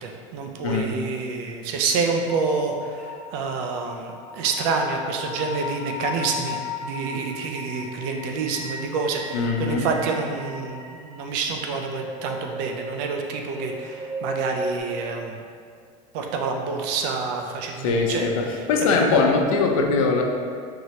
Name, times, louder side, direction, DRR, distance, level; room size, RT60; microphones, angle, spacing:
voice 1, 0.0-15.4 16.1-18.3 18.5-19.0, right 4 dB, 55° right, 3 dB, 0.5 m, -28 dB
sound 1, 2.3-14.8, left 2 dB, 30° right, 1.0 m, -36 dB
voice 2, 9.3-9.9 17.8-20.2, left 4 dB, 90° left, 2 dB, 0.6 m, -21 dB
4.7 x 3.0 x 2.8 m, 2.2 s
cardioid pair, 160°, 17 cm